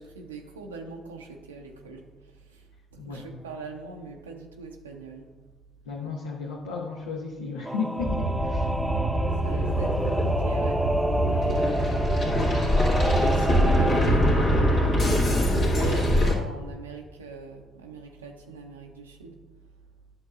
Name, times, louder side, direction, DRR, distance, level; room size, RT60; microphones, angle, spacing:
voice 1, 0.0-2.7 2.9-5.3 9.4-14.7 15.5-19.4, right 4 dB, 90° right, 1 dB, 0.5 m, -41 dB
voice 2, 3.0-3.4 5.8-8.9, left 5 dB, 80° left, -2 dB, 0.7 m, -34 dB
Singing / Musical instrument, 7.6-14.0, right 1 dB, 5° right, 0.6 m, -29 dB
sound 1, 8.0-16.3, equal, 55° left, 2.0 m, -23 dB
10.5 x 6.5 x 2.4 m, 1.3 s
hypercardioid pair, 50°, 0 cm